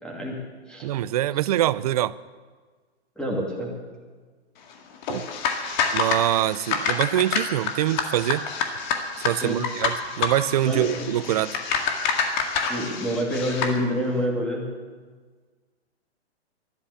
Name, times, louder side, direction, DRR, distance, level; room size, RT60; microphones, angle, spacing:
voice 1, 0.0-0.9 3.2-3.7 9.3-9.7 10.7-11.0 12.7-14.7, equal, 5° left, -2 dB, 2.6 m, -27 dB
voice 2, 0.8-2.2 5.1-5.3 5.9-8.5 9.2-11.5, right 13 dB, 35° right, 19 dB, 0.4 m, -24 dB
sound 1, 5.0-13.8, left 5 dB, 45° left, 2.0 m, -28 dB
12.5 x 12.0 x 8.5 m, 1.5 s
hypercardioid pair, 140°, 33 cm